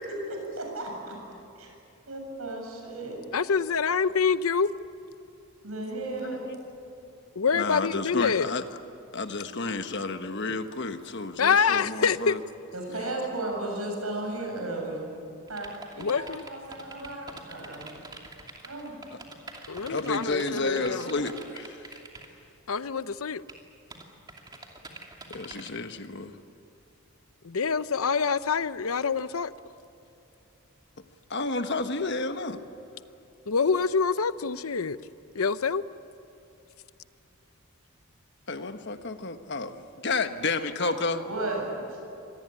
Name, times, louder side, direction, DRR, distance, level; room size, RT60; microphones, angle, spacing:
voice 1, 0.6-1.2 1.6-1.7 2.1-3.2 5.6-6.5 12.7-15.2 15.5-17.9 18.6-19.0 20.3-21.3 40.8-42.0, right 2 dB, 85° right, 1 dB, 7.5 m, -35 dB
voice 2, 3.3-4.7 7.4-8.5 11.4-12.4 16.0-16.4 19.7-21.1 22.7-23.4 27.4-29.5 33.5-35.0 35.3-35.8, left 5 dB, 80° left, 14 dB, 0.7 m, -26 dB
voice 3, 6.2-6.6 7.5-8.6 9.1-12.4 19.1-19.2 19.9-22.0 25.3-26.4 31.3-32.6 38.5-41.2, left 3 dB, 55° left, 8 dB, 1.3 m, -31 dB
sound 1, 15.5-22.3 23.5-23.6 23.9-25.7, right 3 dB, 20° right, 2.6 m, -44 dB
25.5 x 19.0 x 9.9 m, 2.8 s
head